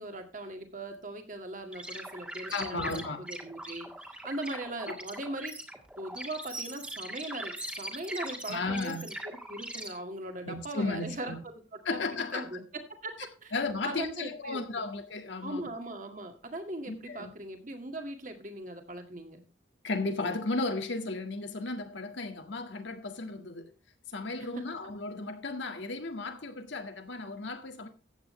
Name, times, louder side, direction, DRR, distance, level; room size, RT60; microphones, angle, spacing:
voice 1, 0.0-5.5 6.0-11.3 11.9-13.1 13.4-13.5 13.8-14.9 15.4-19.4, right 1 dB, 40° right, 2.0 m, -40 dB
sound 1, 1.7-9.9, right 1 dB, 5° right, 1.7 m, -41 dB
voice 2, 2.5-3.2 4.9-5.0 8.5-9.0 10.4-11.4 11.9-12.5 13.5-15.7 16.9-17.3 19.8-23.7 24.1-27.9, left 3 dB, 70° left, 1.8 m, -34 dB
14.5 x 8.9 x 3.2 m
head